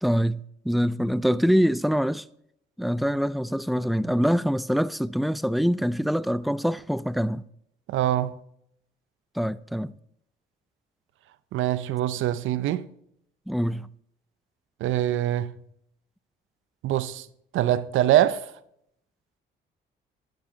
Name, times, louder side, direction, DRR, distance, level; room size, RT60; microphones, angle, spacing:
voice 1, 0.0-2.3 2.8-7.4 9.4-9.9 13.5-13.9, equal, ahead, 0.4 m, -24 dB
voice 2, 7.9-8.4 11.5-12.9 14.8-15.5 16.8-17.3 17.5-18.5, right 12 dB, 80° right, 0.7 m, -24 dB
12.0 x 9.4 x 3.9 m
cardioid pair, 90°, 20 cm